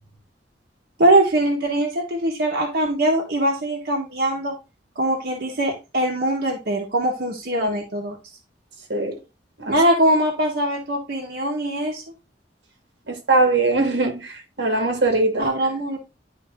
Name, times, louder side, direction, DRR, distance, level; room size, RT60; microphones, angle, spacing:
voice 1, 1.0-4.6 5.0-8.2 9.7-12.0 15.4-16.0, right 1 dB, 65° right, 1.2 m, -22 dB
voice 2, 13.1-15.5, right 3 dB, 90° right, 1.7 m, -21 dB
11.0 x 3.9 x 2.5 m
head